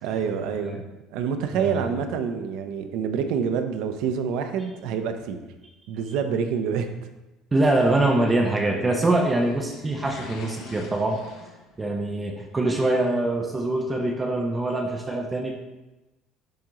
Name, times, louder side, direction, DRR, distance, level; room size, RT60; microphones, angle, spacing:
voice 1, 0.0-0.8 1.1-5.4 5.9-6.9, right 7 dB, 65° right, 7 dB, 0.6 m, -27 dB
voice 2, 1.6-1.9 7.5-11.2 11.8-15.5, right 2 dB, 10° right, 3 dB, 0.4 m, -24 dB
sound 1, 8.8-12.2 12.4-12.5, left 4 dB, 65° left, 1.1 m, -43 dB
10.5 x 3.7 x 3.0 m, 1.0 s
cardioid pair, 175°, 0 cm